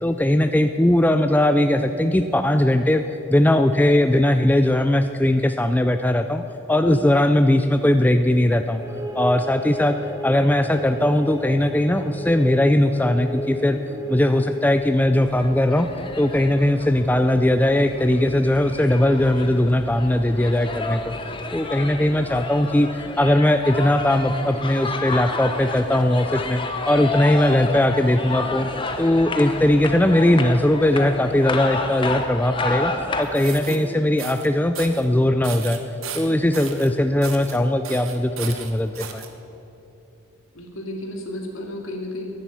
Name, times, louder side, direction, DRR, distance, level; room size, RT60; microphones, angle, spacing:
voice 1, 0.0-3.0 3.3-6.4 6.7-8.8 9.2-10.0 10.2-13.8 14.1-15.9 16.2-21.1 21.5-26.6 26.9-28.7 29.0-32.9 33.2-35.8 36.1-39.2, left 1 dB, 10° left, 8 dB, 0.3 m, -19 dB
sound 1, 8.8-14.7, equal, 15° right, 1.3 m, -33 dB
sound 2, 15.3-33.2, left 3 dB, 25° left, 0.9 m, -30 dB
sound 3, 33.2-33.8 34.2-34.5 34.7-35.0 35.4-36.9 37.2-37.6 37.8-39.3, right 8 dB, 70° right, 1.1 m, -35 dB
voice 2, 40.5-42.2, left 1 dB, 75° left, 1 dB, 2.3 m, -32 dB
11.0 x 10.5 x 9.1 m, 2.8 s
head